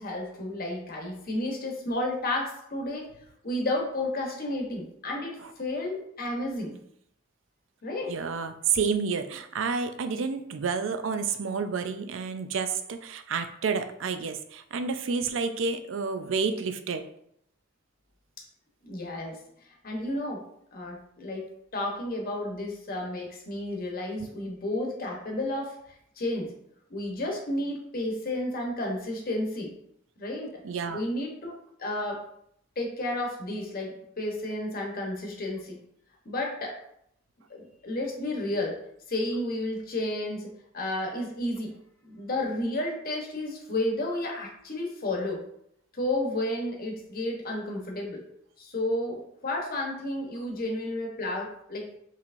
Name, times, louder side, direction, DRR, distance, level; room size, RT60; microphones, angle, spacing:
voice 1, 0.0-3.0 3.4-6.8 7.8-8.1 18.8-19.4 19.7-20.4 20.7-21.4 21.7-25.8 26.2-26.5 26.9-29.7 30.2-30.6 30.9-31.5 31.8-32.2 32.8-35.8 36.2-36.8 37.5-38.8 39.1-41.7 42.0-45.4 45.9-48.2 48.6-52.0, left 1 dB, 50° left, 0 dB, 1.0 m, -32 dB
voice 2, 8.1-17.0 24.2-24.3 30.6-31.0, right 5 dB, 70° right, 9 dB, 0.4 m, -30 dB
5.5 x 3.1 x 2.6 m, 0.71 s
head